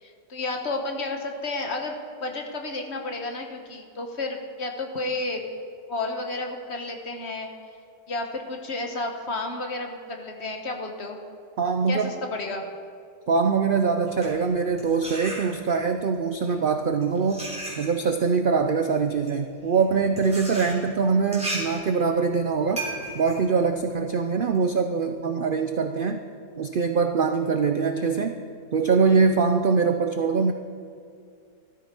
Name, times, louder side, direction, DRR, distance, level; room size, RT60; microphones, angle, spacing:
voice 1, 0.0-5.4 5.9-7.5 8.1-11.2 11.9-12.6 16.4-16.6, left 2 dB, 45° left, 3 dB, 1.4 m, -32 dB
voice 2, 11.6-12.1 13.3-17.5 17.8-22.8 23.1-26.2 26.6-28.4 28.7-30.5, right 5 dB, 65° right, 6 dB, 0.5 m, -23 dB
sound 1, 13.9-15.9 16.7-24.6, right 1 dB, 5° right, 3.4 m, -37 dB
14.0 x 13.0 x 4.4 m, 2.4 s
omnidirectional pair, 1.6 m